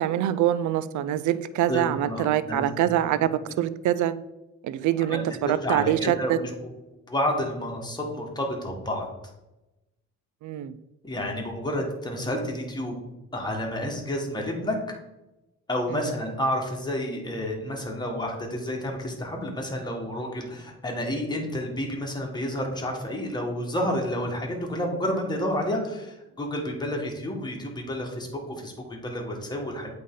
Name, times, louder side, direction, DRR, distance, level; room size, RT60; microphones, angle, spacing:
voice 1, 0.0-3.3 3.6-4.1 4.6-6.4 10.4-10.8, right 12 dB, 75° right, 0.5 m, -24 dB
voice 2, 1.7-2.7 3.1-3.2 5.1-6.5 7.1-9.1 11.0-13.0 13.3-14.8 15.7-29.9, left 1 dB, 15° left, 1.6 m, -30 dB
8.3 x 3.8 x 3.7 m
cardioid pair, 90°, 30 cm